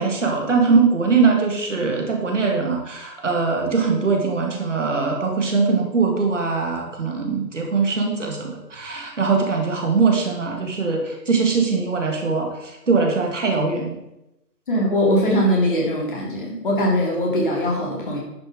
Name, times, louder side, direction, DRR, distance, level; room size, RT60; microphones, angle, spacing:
voice 1, 0.0-14.0, right 4 dB, 45° right, 1 dB, 2.1 m, -21 dB
voice 2, 14.7-18.2, equal, 30° left, -2 dB, 2.7 m, -21 dB
10.5 x 6.8 x 4.9 m, 0.90 s
figure-of-eight pair, 155°, 50 cm